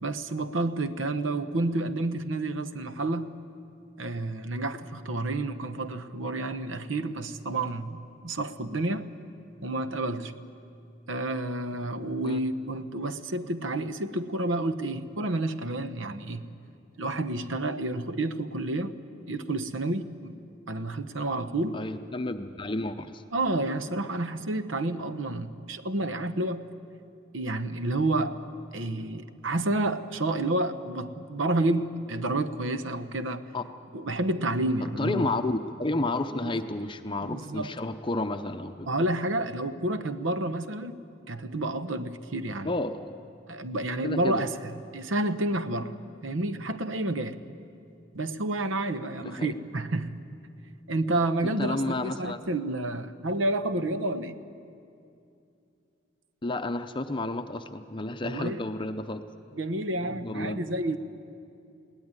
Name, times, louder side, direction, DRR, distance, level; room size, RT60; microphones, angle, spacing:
voice 1, 0.0-3.3 4.0-9.1 9.6-10.3 11.1-16.4 17.0-19.0 19.3-20.3 20.7-21.8 23.3-26.7 27.3-28.5 28.7-33.4 33.9-35.3 37.2-37.7 38.9-40.9 41.3-42.7 43.5-46.0 46.2-47.4 48.1-50.1 50.9-54.4 58.2-58.6 59.6-61.0, right 2 dB, 80° right, 11 dB, 1.0 m, -30 dB
voice 2, 21.7-23.2 33.5-33.6 34.8-38.9 42.6-43.1 44.0-44.4 49.2-49.5 51.6-52.4 56.4-59.2 60.2-60.6, left 2 dB, 25° left, 8 dB, 0.6 m, -31 dB
21.0 x 17.5 x 9.7 m, 2.6 s
head